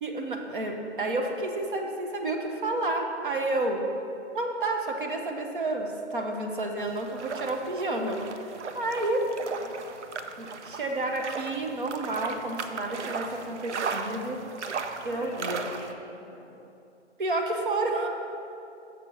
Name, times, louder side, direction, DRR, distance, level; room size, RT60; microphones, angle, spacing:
voice 1, 0.0-3.8 4.3-8.2 8.7-9.2 10.4-14.4 15.0-15.6 17.2-18.1, right 2 dB, 45° right, 2 dB, 0.8 m, -30 dB
waves on coast - atmo, 6.8-15.9, right 5 dB, 75° right, 0.7 m, -36 dB
voice 2, 15.1-16.6, left 1 dB, 10° right, -12 dB, 0.6 m, -45 dB
6.7 x 4.5 x 6.5 m, 2.7 s
hypercardioid pair, 165°, 35 cm